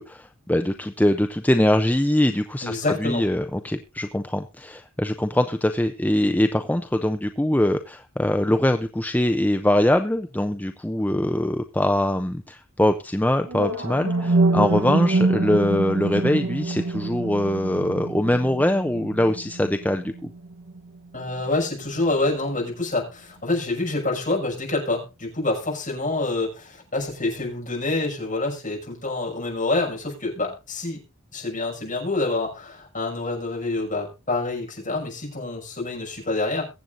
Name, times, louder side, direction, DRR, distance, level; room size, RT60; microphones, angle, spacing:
voice 1, 0.0-20.3, left 1 dB, 10° left, 8 dB, 0.5 m, -23 dB
voice 2, 2.6-3.2 21.1-31.0 31.3-36.6, left 2 dB, 35° left, -1 dB, 6.0 m, -27 dB
sound 1, 13.5-21.5, right 2 dB, 85° right, 1.0 m, -26 dB
22.5 x 7.8 x 2.6 m, 0.29 s
head